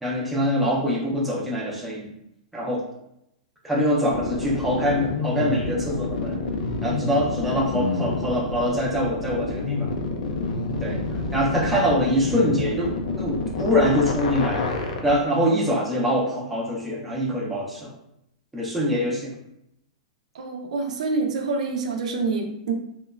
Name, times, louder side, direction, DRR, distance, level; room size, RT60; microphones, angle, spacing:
voice 1, 0.0-2.1 2.5-2.8 3.6-6.4 6.8-9.9 10.8-11.0 11.3-14.7 15.0-17.9 18.5-19.3, equal, 5° right, -5 dB, 0.5 m, -24 dB
sound 1, 4.1-15.1, left 3 dB, 75° left, 0.4 m, -28 dB
voice 2, 20.3-22.7, right 4 dB, 75° right, 3 dB, 0.5 m, -26 dB
2.9 x 2.1 x 2.3 m, 0.79 s
supercardioid pair, 160°, 4 cm